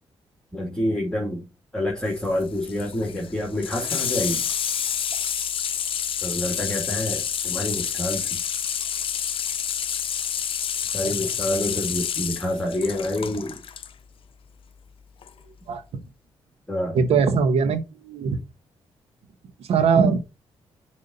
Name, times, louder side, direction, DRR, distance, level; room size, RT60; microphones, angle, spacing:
voice 1, 0.5-1.5 1.7-4.4 6.2-8.4 10.9-13.6 16.7-17.0 20.0-20.1, left 1 dB, 5° left, 2.2 m, -27 dB
Water tap faucet / Sink (filling or washing), 2.1-13.9 15.2-15.3, left 8 dB, 60° left, 0.6 m, -28 dB
voice 2, 15.7-16.0 16.9-18.4 19.7-20.3, right 6 dB, 80° right, 1.2 m, -21 dB
6.7 x 3.6 x 5.3 m
cardioid pair, 85°, 10 cm